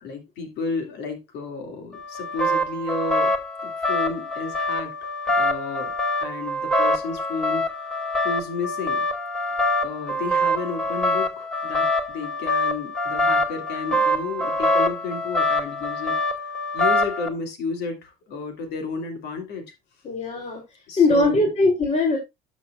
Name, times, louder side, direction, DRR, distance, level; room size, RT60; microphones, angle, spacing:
voice 1, 0.0-3.3 3.6-5.9 6.2-7.9 8.2-9.1 9.8-16.2 16.4-19.6 20.9-21.5, left 4 dB, 65° left, 5 dB, 2.5 m, -32 dB
sound 1, 1.9-17.3, left 1 dB, 5° left, 1.7 m, -24 dB
voice 2, 20.0-20.6 21.0-22.2, left 2 dB, 35° left, 1 dB, 3.2 m, -20 dB
12.0 x 6.3 x 2.4 m, 0.20 s
hypercardioid pair, 75°, 19 cm